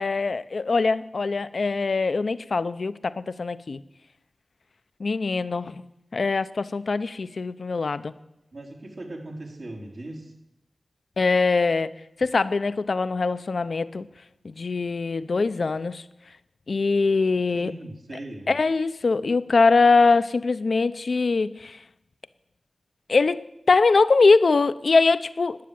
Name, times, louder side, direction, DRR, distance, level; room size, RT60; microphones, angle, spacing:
voice 1, 0.0-3.8 5.0-5.8 6.1-8.1 11.2-11.9 12.2-14.0 14.4-16.0 16.7-17.7 18.5-21.8 23.1-25.6, left 4 dB, 70° left, 14 dB, 0.6 m, -22 dB
voice 2, 8.5-10.3 17.5-18.6, right 1 dB, 70° right, -2 dB, 3.9 m, -39 dB
12.5 x 9.3 x 8.7 m, 0.87 s
cardioid pair, 45°, 0 cm